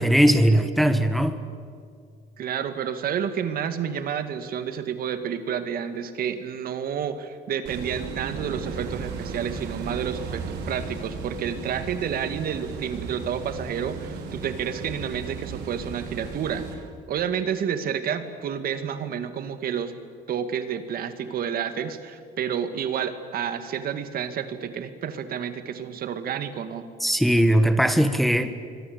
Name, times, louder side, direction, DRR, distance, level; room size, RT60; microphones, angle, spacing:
voice 1, 0.0-1.4 27.0-28.5, equal, ahead, 9 dB, 1.5 m, -19 dB
voice 2, 2.4-19.9 20.3-26.9, right 8 dB, 60° right, 9 dB, 2.1 m, -30 dB
sound 1, 7.7-16.7, right 5 dB, 80° right, 4.6 m, -35 dB
26.5 x 23.0 x 8.1 m, 2.1 s
cardioid pair, 110°, 17 cm